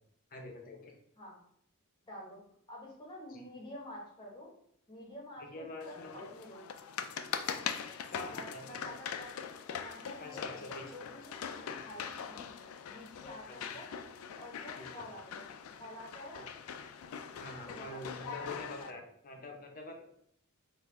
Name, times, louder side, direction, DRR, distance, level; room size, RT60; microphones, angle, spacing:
voice 1, 0.3-0.9 3.3-3.4 5.5-6.3 8.1-8.8 10.2-10.8 13.5-13.6 14.8-14.9 16.3-16.4 17.4-20.0, left 2 dB, 40° left, 2 dB, 0.6 m, -46 dB
voice 2, 2.0-2.4 2.7-4.5 4.9-6.6 8.3-9.4 9.8-13.9 14.4-15.5 15.8-16.5 17.7-19.0, left 1 dB, 20° left, -2 dB, 1.0 m, -49 dB
sound 1, 5.8-18.9, left 7 dB, 80° left, 0.3 m, -42 dB
3.5 x 2.5 x 3.1 m, 0.71 s
head